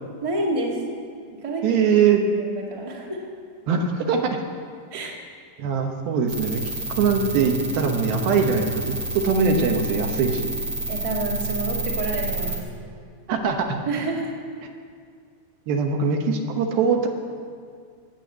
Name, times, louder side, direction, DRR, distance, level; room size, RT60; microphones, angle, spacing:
voice 1, 0.2-0.8 1.4-1.8 2.4-3.3 4.9-5.1 10.9-12.6 13.8-14.3, right 2 dB, 25° right, -2 dB, 0.6 m, -28 dB
voice 2, 1.6-2.2 3.7-4.4 5.0-5.1 5.6-6.6 7.0-10.5 13.3-13.8 15.7-17.1, right 5 dB, 75° right, 4 dB, 2.9 m, -22 dB
sound 1, 6.3-12.6, right 2 dB, 45° right, 1.6 m, -29 dB
18.5 x 7.0 x 8.0 m, 2.1 s
omnidirectional pair, 4.5 m